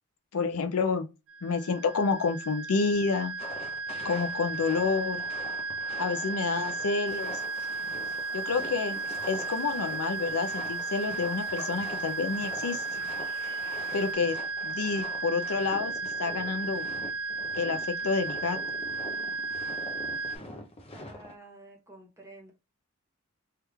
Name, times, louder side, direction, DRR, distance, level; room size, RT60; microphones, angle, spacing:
voice 1, 0.3-1.1 1.4-3.3 4.0-5.2 6.0-7.4 8.3-9.0 9.3-12.8 13.9-14.4 14.6-15.9 16.2-16.9 17.6-17.8 18.0-18.6, left 4 dB, 80° left, 0.5 m, -29 dB
sound 1, 1.3-20.4, right 4 dB, 65° right, 0.4 m, -34 dB
sound 2, 3.4-21.3, left 1 dB, 25° left, 0.5 m, -45 dB
sound 3, 7.0-14.1, equal, 10° left, 1.0 m, -50 dB
voice 2, 20.9-22.5, right 2 dB, 15° right, 0.9 m, -50 dB
3.3 x 2.4 x 3.0 m
head